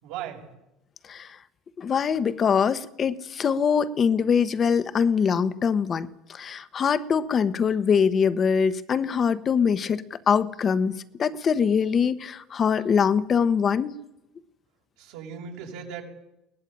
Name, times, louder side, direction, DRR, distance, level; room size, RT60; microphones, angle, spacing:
voice 1, 0.0-0.4 15.0-16.0, right 8 dB, 75° right, 1 dB, 6.8 m, -37 dB
voice 2, 1.8-13.9, left 6 dB, 30° left, 15 dB, 1.1 m, -23 dB
22.5 x 18.5 x 9.1 m, 0.92 s
cardioid pair, 130°, 0 cm